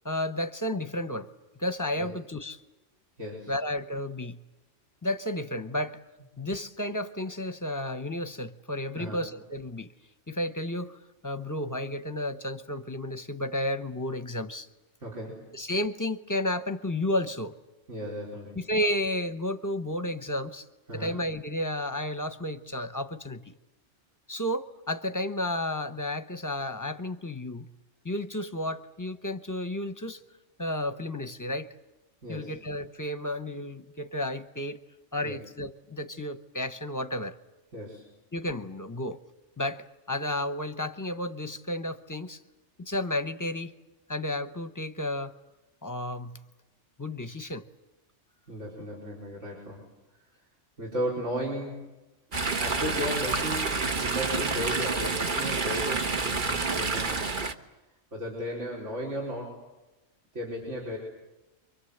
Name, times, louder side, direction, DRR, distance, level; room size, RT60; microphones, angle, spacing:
voice 1, 0.0-1.3 1.6-2.6 3.5-4.4 5.0-6.0 6.4-9.9 10.3-14.7 15.5-17.5 18.5-20.6 20.9-23.5 24.3-27.7 28.0-30.2 30.6-31.7 32.3-34.8 35.1-37.3 38.3-39.2 39.6-42.4 42.8-43.7 44.1-45.3 45.8-46.4 47.0-47.7, left 1 dB, 15° left, 10 dB, 0.9 m, -32 dB
voice 2, 3.2-3.5 8.9-9.3 15.0-15.4 17.9-18.6 20.9-21.2 32.2-32.6 35.2-35.4 37.7-38.1 48.5-49.8 50.8-51.8 52.6-57.5 58.1-59.6 60.3-61.0, equal, 75° right, -2 dB, 5.1 m, -35 dB
Chatter / Stream, 52.3-57.5, right 3 dB, 45° right, 1.4 m, -28 dB
29.5 x 24.5 x 8.0 m, 1.0 s
omnidirectional pair, 1.2 m